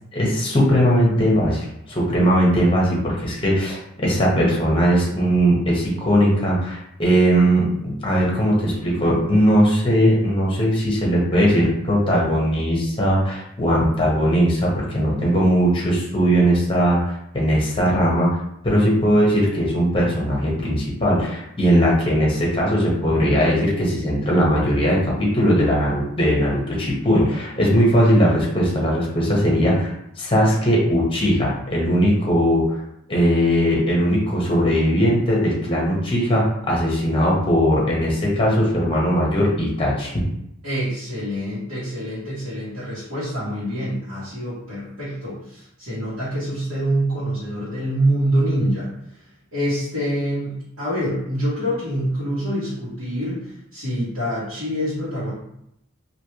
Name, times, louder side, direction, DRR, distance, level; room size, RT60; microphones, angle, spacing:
voice 1, 0.1-17.0 17.3-18.3 18.6-32.8 33.1-40.1, equal, 25° left, -4 dB, 1.0 m, -19 dB
voice 2, 40.6-49.2 49.5-55.3, right 1 dB, 85° right, -12 dB, 1.4 m, -25 dB
3.2 x 2.7 x 2.9 m, 0.78 s
head